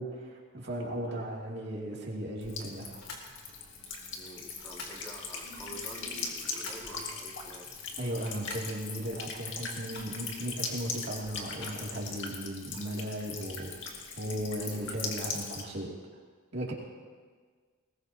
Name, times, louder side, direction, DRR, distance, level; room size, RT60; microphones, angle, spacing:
voice 1, 0.0-3.0 8.0-15.9 16.5-16.7, right 1 dB, 50° right, -3 dB, 2.5 m, -36 dB
Buzz / Water tap faucet / Trickle dribble, 2.4-15.6, left 4 dB, 60° left, 2.1 m, -40 dB
sound 1, 3.0-3.3 4.5-5.0 6.1-7.0 8.0-8.8 9.9-10.4 11.5-12.2, left 3 dB, 90° left, 3.2 m, -47 dB
voice 2, 4.1-7.7 14.6-14.9, equal, 10° left, -6 dB, 3.0 m, -48 dB
21.5 x 19.0 x 2.9 m, 1.5 s
head